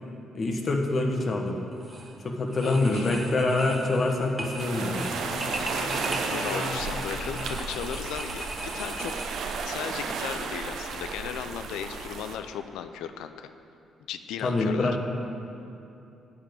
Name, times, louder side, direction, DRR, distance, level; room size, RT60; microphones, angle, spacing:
voice 1, 0.3-1.6 2.2-5.1 14.4-15.0, left 2 dB, 45° left, 2 dB, 1.3 m, -25 dB
sound 1, 1.7-2.1 2.5-9.7, right 1 dB, 15° right, 1.6 m, -39 dB
voice 2, 2.6-3.1 6.3-9.1 9.6-13.5 14.1-14.9, left 9 dB, 90° left, 9 dB, 0.4 m, -36 dB
sound 2, 4.3-8.6, left 4 dB, 60° left, 0.8 m, -40 dB
sound 3, 4.6-12.4, right 5 dB, 75° right, 0.8 m, -33 dB
10.0 x 5.1 x 7.8 m, 2.7 s
cardioid pair, 90°, 0 cm